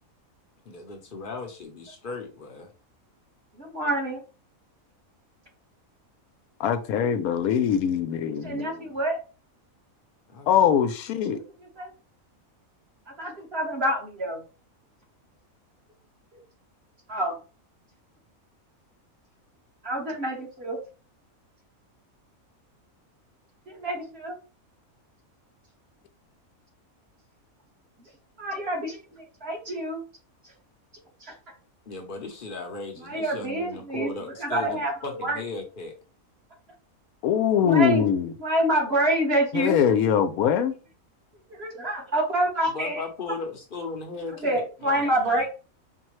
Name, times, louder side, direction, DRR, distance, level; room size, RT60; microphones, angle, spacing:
voice 1, 0.7-2.7 10.3-10.8 31.9-36.0 42.7-45.5, left 3 dB, 45° left, 0.8 m, -37 dB
voice 2, 3.5-4.2 8.2-9.2 11.6-11.9 13.2-14.4 17.1-17.4 19.8-20.8 23.7-24.4 28.4-30.0 31.2-31.3 33.0-34.1 34.4-35.4 37.6-38.1 38.4-39.7 41.6-43.0 44.4-45.5, right 1 dB, 45° right, 1.5 m, -27 dB
voice 3, 6.6-8.7 10.5-11.4 37.2-38.3 39.5-40.7, left 8 dB, 80° left, 1.1 m, -22 dB
5.5 x 2.2 x 3.0 m
omnidirectional pair, 1.5 m